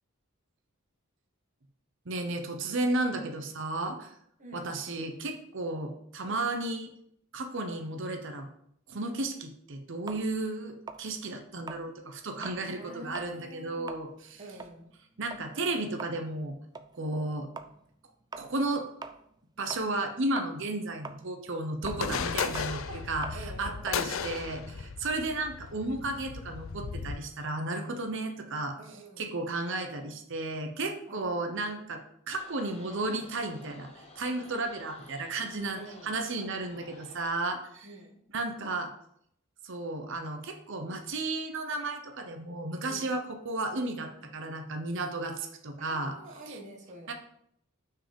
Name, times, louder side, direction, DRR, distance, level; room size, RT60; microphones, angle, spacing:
voice 1, 2.1-4.1 4.5-6.9 7.3-8.5 8.9-14.4 15.2-16.6 17.0-17.5 18.4-18.8 19.6-28.8 29.2-32.0 32.3-33.9 34.2-37.9 38.3-38.9 39.6-46.2 46.5-46.6 47.1-47.2, right 2 dB, 65° right, 5 dB, 0.9 m, -33 dB
sound 1, 10.1-12.7 13.0-13.4 13.7-20.1 20.4-25.1, right 4 dB, 20° right, 0.4 m, -45 dB
voice 2, 12.8-13.9 14.4-14.9 22.7-23.0 23.3-23.8 24.1-24.5 28.8-29.3 31.1-31.5 35.7-36.2 37.8-38.2 42.9-43.1 45.8-47.1, right 2 dB, 35° right, 1 dB, 1.5 m, -47 dB
sound 2, 21.8-27.2, left 6 dB, 70° left, 0.5 m, -35 dB
sound 3, 32.3-37.3, left 2 dB, 30° left, 1.0 m, -53 dB
5.9 x 4.8 x 5.2 m, 0.71 s
head